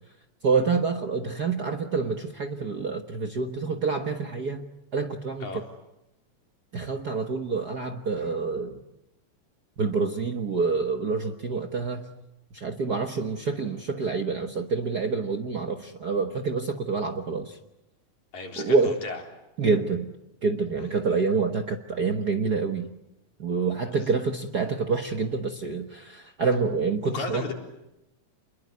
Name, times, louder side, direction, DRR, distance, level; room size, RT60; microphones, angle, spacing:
voice 1, 0.4-4.7 4.9-5.6 6.7-8.8 9.8-12.0 12.5-17.6 18.6-19.0 19.6-20.1 20.4-22.9 23.4-27.4, right 4 dB, 50° right, 6 dB, 1.3 m, -27 dB
voice 2, 18.3-19.2 20.8-21.0 23.7-24.1 27.0-27.5, left 3 dB, 80° left, 1 dB, 5.5 m, -36 dB
28.5 x 21.5 x 9.6 m, 0.90 s
omnidirectional pair, 3.3 m